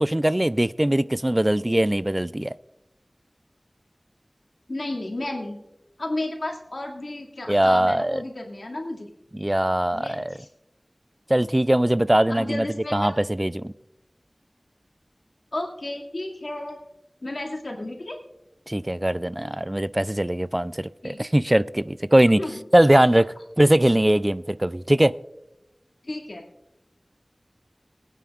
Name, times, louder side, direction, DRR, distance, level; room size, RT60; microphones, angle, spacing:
voice 1, 0.0-2.5 7.5-8.2 9.3-10.3 11.3-12.7 12.9-13.7 18.7-22.4 22.7-25.1, right 1 dB, 25° right, 0.3 m, -21 dB
voice 2, 4.7-5.6 6.0-9.1 9.9-10.5 12.3-13.1 15.5-16.8 17.2-18.2 21.0-21.2 22.4-22.6 26.0-26.4, left 1 dB, 85° left, 2.2 m, -32 dB
23.0 x 9.2 x 2.4 m
wide cardioid pair, 40°, 0 cm